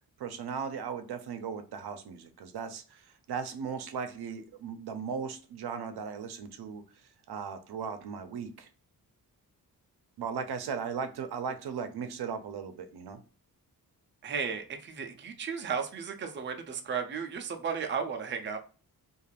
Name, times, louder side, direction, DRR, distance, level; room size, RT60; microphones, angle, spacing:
voice 1, 0.2-6.8 7.3-8.7 10.2-13.2, right 6 dB, 90° right, 8 dB, 0.6 m, -37 dB
voice 2, 14.2-18.6, right 6 dB, 30° right, 5 dB, 0.4 m, -34 dB
2.4 x 2.4 x 3.2 m, 0.36 s
wide cardioid pair, 160°, 38 cm